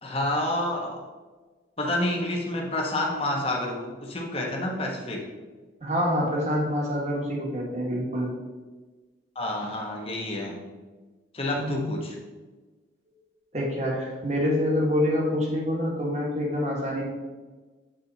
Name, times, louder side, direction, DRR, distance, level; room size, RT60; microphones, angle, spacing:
voice 1, 0.0-1.0 1.8-5.2 9.3-10.6 11.3-12.2, left 1 dB, 30° left, -1 dB, 1.1 m, -29 dB
voice 2, 5.8-8.3 11.6-11.9 13.5-17.1, left 1 dB, 35° right, -2 dB, 1.5 m, -26 dB
7.9 x 4.2 x 4.0 m, 1.3 s
head